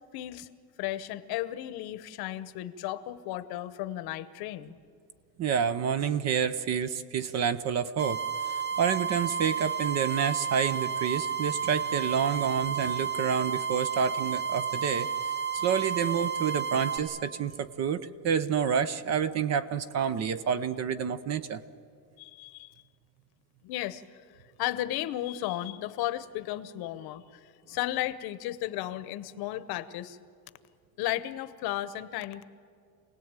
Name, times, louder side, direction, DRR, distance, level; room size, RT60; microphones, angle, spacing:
voice 1, 0.1-0.5 0.8-4.7 22.2-22.7 23.6-24.0 24.6-30.2 31.0-32.4, left 14 dB, 50° left, 14 dB, 1.0 m, -34 dB
voice 2, 5.4-8.2 8.8-15.1 15.5-21.6, right 7 dB, 35° right, 14 dB, 0.7 m, -28 dB
sound 1, 8.0-17.0, right 7 dB, 80° right, 4.0 m, -31 dB
27.0 x 18.5 x 8.9 m, 2.3 s
cardioid pair, 150°, 47 cm